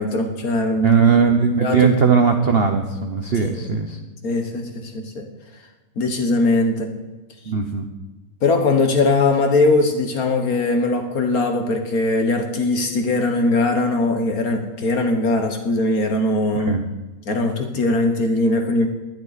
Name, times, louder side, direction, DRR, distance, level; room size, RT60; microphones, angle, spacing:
voice 1, 0.0-1.0 1.5-1.9 3.5-3.8 4.2-5.2 6.0-6.9 8.4-16.7 17.3-18.9, left 2 dB, 50° left, 5 dB, 1.4 m, -20 dB
voice 2, 0.8-4.0 7.5-7.9 16.5-16.8, right 6 dB, 65° right, 5 dB, 0.6 m, -18 dB
19.5 x 11.0 x 4.1 m, 1.2 s
omnidirectional pair, 2.4 m